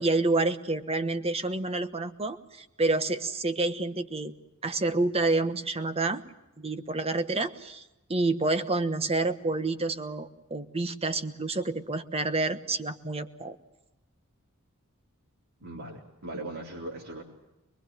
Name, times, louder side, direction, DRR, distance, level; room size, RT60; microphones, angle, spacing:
voice 1, 0.0-4.3 4.6-6.2 6.6-7.8 8.1-13.6, right 2 dB, 30° right, 10 dB, 1.2 m, -28 dB
voice 2, 15.6-17.2, right 2 dB, 85° right, -3 dB, 3.9 m, -39 dB
24.0 x 22.5 x 7.7 m, 0.97 s
head